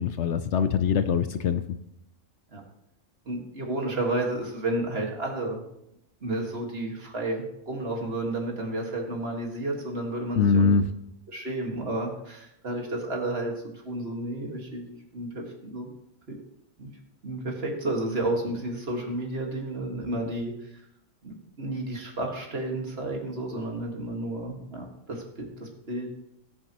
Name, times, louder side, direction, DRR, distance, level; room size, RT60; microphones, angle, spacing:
voice 1, 0.0-1.6 10.4-10.8, left 6 dB, 65° left, 10 dB, 0.8 m, -23 dB
voice 2, 3.3-5.6 6.2-10.7 11.3-15.9 16.8-16.9 17.2-20.8 21.2-26.1, right 2 dB, 50° right, 0 dB, 2.1 m, -31 dB
19.0 x 7.1 x 3.0 m, 0.79 s
omnidirectional pair, 1.4 m